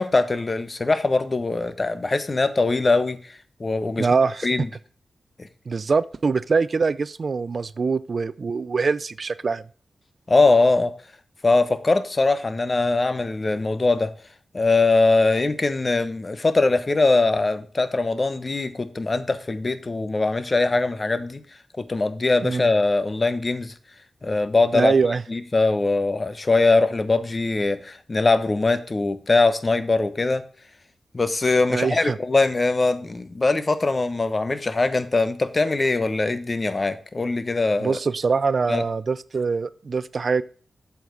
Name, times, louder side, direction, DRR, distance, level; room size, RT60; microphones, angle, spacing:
voice 1, 0.0-3.3 3.6-4.1 4.4-4.7 10.3-10.9 11.4-14.1 14.5-21.4 21.8-23.7 24.2-24.9 25.3-30.4 31.1-38.0 38.7-38.8, left 3 dB, 45° left, 1.0 m, -21 dB
voice 2, 4.0-4.5 5.7-9.6 22.4-22.7 24.7-25.2 31.7-32.2 37.8-40.4, right 4 dB, 60° right, 0.4 m, -23 dB
7.8 x 7.3 x 3.9 m
cardioid pair, 45°, 0 cm